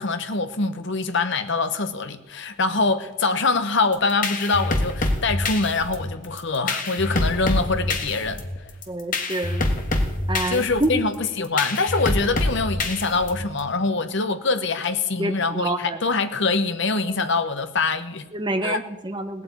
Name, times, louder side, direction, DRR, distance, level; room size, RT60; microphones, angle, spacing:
voice 1, 0.0-8.4 10.5-18.2 18.6-18.8, left 3 dB, 55° left, 1.1 m, -24 dB
sound 1, 3.9-13.6, left 2 dB, 40° left, 1.5 m, -26 dB
voice 2, 8.9-9.6 10.3-10.9 15.2-16.0 18.3-19.4, right 2 dB, 20° right, 1.0 m, -27 dB
18.0 x 8.6 x 8.4 m
head